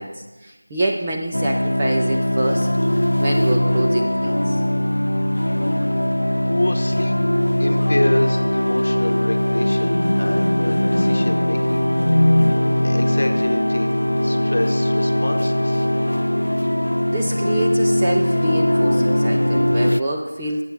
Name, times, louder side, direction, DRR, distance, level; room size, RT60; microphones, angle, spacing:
voice 1, 0.0-2.7 2.9-4.6 17.1-20.6, right 1 dB, 5° right, -3 dB, 0.3 m, -26 dB
sound 1, 1.3-20.0, left 1 dB, 80° left, 0.3 m, -20 dB
voice 2, 6.5-7.2 7.6-11.8 12.4-12.5 12.8-15.9, left 1 dB, 30° left, 4 dB, 1.1 m, -27 dB
12.0 x 8.4 x 6.3 m, 1.1 s
figure-of-eight pair, 180°, 0 cm